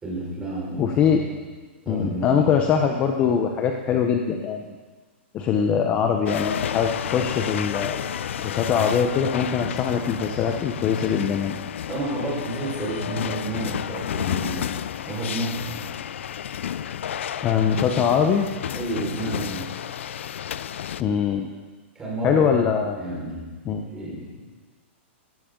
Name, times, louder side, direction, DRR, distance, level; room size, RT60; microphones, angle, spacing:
voice 1, 0.0-0.9 1.8-2.4 11.9-14.7 15.0-15.8 18.7-19.7 21.9-22.5 22.9-23.5 23.8-24.3, right 2 dB, 10° right, -6 dB, 4.9 m, -30 dB
voice 2, 0.8-1.2 1.9-4.8 5.3-8.0 8.4-11.5 17.4-18.5 21.0-21.5 22.2-23.0 23.6-23.8, left 7 dB, 20° left, 4 dB, 0.8 m, -22 dB
sound 1, 6.3-21.0, left 9 dB, 75° left, 0.5 m, -31 dB
17.5 x 15.5 x 3.9 m, 1.4 s
hypercardioid pair, 165°, 7 cm